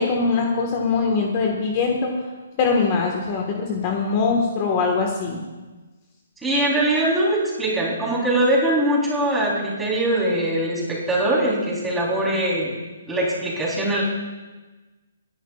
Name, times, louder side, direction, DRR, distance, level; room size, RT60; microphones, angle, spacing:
voice 1, 0.0-2.1 2.6-5.4, left 4 dB, 35° left, 1 dB, 1.6 m, -22 dB
voice 2, 6.4-12.7 13.1-14.0, right 1 dB, 10° right, -6 dB, 3.8 m, -22 dB
27.0 x 10.5 x 2.5 m, 1.2 s
hypercardioid pair, 145°, 0 cm